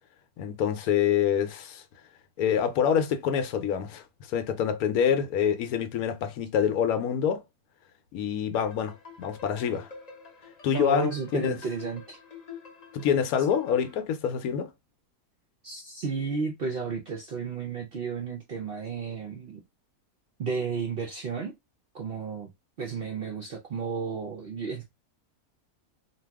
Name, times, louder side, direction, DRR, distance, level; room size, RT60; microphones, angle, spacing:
voice 1, 0.4-1.8 2.4-4.0 4.3-7.4 8.1-9.9 10.6-11.6 12.9-14.7, left 8 dB, 80° left, 1.0 m, -26 dB
sound 1, 8.5-14.0, left 6 dB, 35° left, 0.7 m, -48 dB
voice 2, 10.7-12.2 15.6-19.6 20.4-21.5 21.9-22.5 22.8-24.9, right 5 dB, 60° right, 0.6 m, -32 dB
2.7 x 2.3 x 3.4 m
omnidirectional pair, 1.6 m